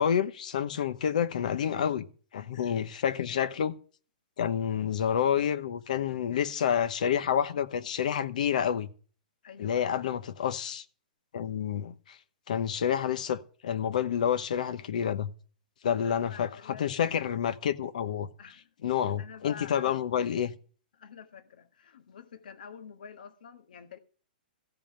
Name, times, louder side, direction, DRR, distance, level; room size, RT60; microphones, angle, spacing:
voice 1, 0.0-2.1 2.3-3.7 4.4-8.9 9.6-10.8 11.3-12.2 12.5-15.3 15.8-18.3 18.8-20.5, left 8 dB, 55° left, 1.0 m, -29 dB
voice 2, 9.4-10.1 16.0-16.8 18.4-18.7 19.2-20.0 20.9-24.0, left 7 dB, 70° left, 1.7 m, -48 dB
15.0 x 5.5 x 8.9 m
hypercardioid pair, 180°, 5 cm